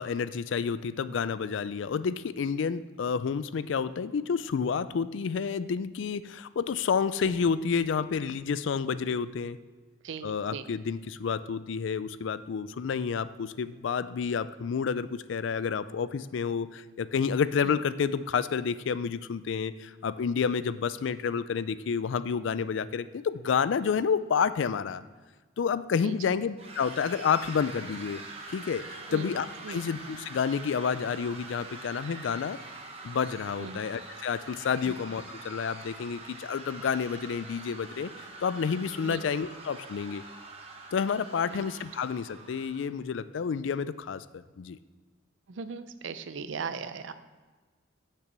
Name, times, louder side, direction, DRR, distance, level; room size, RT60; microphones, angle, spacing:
voice 1, 0.0-9.6 10.2-25.0 25.6-28.2 28.5-32.6 33.0-38.1 38.4-40.2 40.9-44.8, left 6 dB, 75° left, 15 dB, 0.4 m, -30 dB
voice 2, 10.0-10.7 17.6-17.7 26.0-26.4 29.1-29.3 29.6-29.8 33.6-33.8 34.8-34.9 39.1-39.2 41.5-41.7 45.5-47.1, right 5 dB, 75° right, 12 dB, 0.5 m, -38 dB
sound 1, 26.6-42.9, right 3 dB, 30° right, 1.0 m, -45 dB
6.7 x 5.9 x 6.7 m, 1.3 s
head